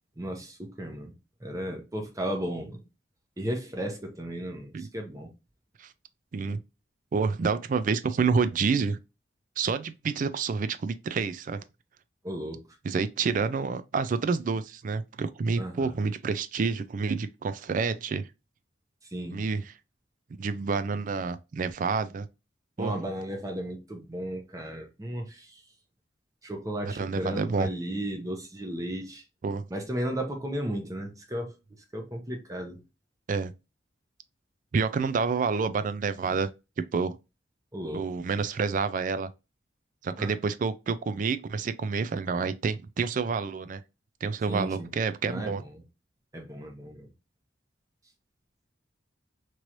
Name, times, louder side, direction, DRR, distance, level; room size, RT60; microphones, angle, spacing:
voice 1, 0.2-1.1 1.4-2.8 3.4-5.3 12.2-12.6 15.6-15.9 19.1-19.4 22.8-25.5 26.4-29.2 29.7-31.5 31.9-32.8 37.7-38.0 40.2-40.3 44.5-44.9 45.3-45.8 46.3-47.1, right 1 dB, 20° right, 0.9 m, -34 dB
voice 2, 7.1-9.0 9.6-11.6 12.8-18.3 19.3-19.7 20.4-22.3 22.8-22.9 26.8-27.7 29.4-29.6 33.3-33.5 34.7-36.5 36.9-37.1 37.9-39.3 40.0-43.8 44.2-45.6, right 5 dB, 45° right, 0.3 m, -28 dB
3.0 x 3.0 x 2.5 m
head